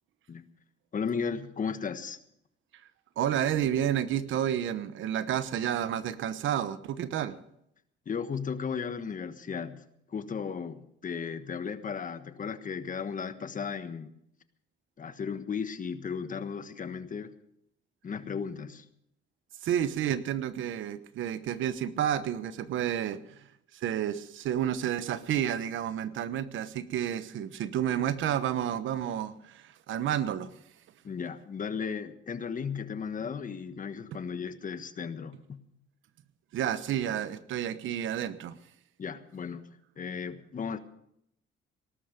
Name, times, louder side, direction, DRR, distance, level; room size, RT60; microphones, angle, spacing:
voice 1, 0.9-2.2 8.0-9.8 10.1-14.1 15.0-17.3 18.0-18.8 31.0-35.6 39.0-39.6 40.0-40.8, left 6 dB, 40° left, 11 dB, 1.4 m, -35 dB
voice 2, 3.2-7.4 19.6-23.5 23.7-30.5 36.5-38.6, right 10 dB, 80° right, 14 dB, 1.1 m, -30 dB
19.0 x 12.5 x 5.2 m, 0.74 s
cardioid pair, 90°, 20 cm